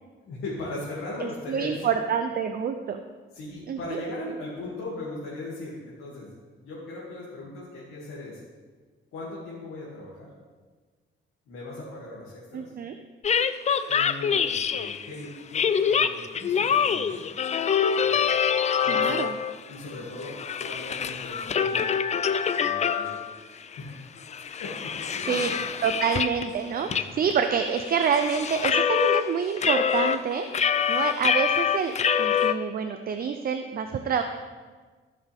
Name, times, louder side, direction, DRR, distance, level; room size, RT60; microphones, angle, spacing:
voice 1, 0.2-1.9 3.3-8.4 9.1-10.3 11.5-12.7 13.9-17.2 18.0-18.2 18.8-19.2 19.7-22.2 22.5-23.2 23.8-24.2 24.6-25.7 26.8-27.2, left 2 dB, 85° left, -7 dB, 2.4 m, -38 dB
voice 2, 1.2-3.0 3.7-4.0 12.5-12.9 18.9-19.3 25.3-25.5 25.8-30.5 30.9-34.2, right 7 dB, 45° right, 7 dB, 0.6 m, -27 dB
sound 1, 13.2-15.1 15.5-19.6 19.9-23.3 23.7-23.8 24.2-26.5 26.9-27.0 27.3-29.2 29.6-32.5, left 7 dB, 35° left, 0.4 m, -25 dB
15.0 x 6.7 x 3.5 m, 1.4 s
cardioid pair, 125°, 21 cm